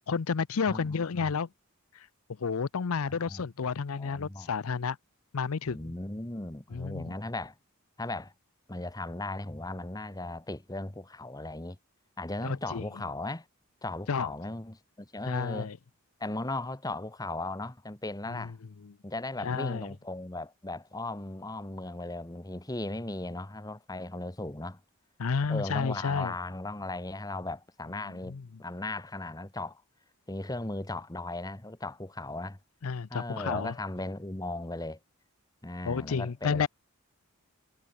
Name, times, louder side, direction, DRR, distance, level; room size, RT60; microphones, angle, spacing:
voice 1, 0.1-1.5 2.4-5.0 5.3-5.9 6.7-7.2 12.4-12.8 14.1-14.3 15.2-15.8 18.4-18.5 18.8-18.9 19.4-19.9 25.2-26.3 28.0-28.4 32.8-33.7 35.8-36.7, left 5 dB, 75° left, 0.6 m, -31 dB
voice 2, 0.7-1.3 3.1-3.4 4.0-4.5 5.7-7.5 8.0-8.3 8.7-11.8 12.2-13.4 13.8-15.7 16.2-18.5 19.0-24.8 25.5-29.8 30.3-32.6 33.1-35.0 35.6-36.7, left 2 dB, 15° left, 1.2 m, -37 dB
head